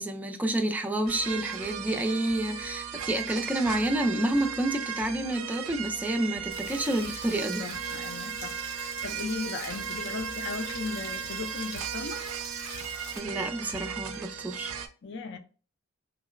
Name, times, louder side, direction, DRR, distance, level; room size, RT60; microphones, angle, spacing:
voice 1, 0.0-7.7 13.2-14.7, right 1 dB, 10° right, 0.3 m, -29 dB
sound 1, 1.1-14.9, right 7 dB, 75° right, 0.4 m, -36 dB
Rain, 6.5-13.2, left 2 dB, 80° left, 1.4 m, -45 dB
voice 2, 7.6-12.3 15.0-15.4, left 4 dB, 55° left, 0.5 m, -37 dB
3.7 x 2.0 x 2.4 m
head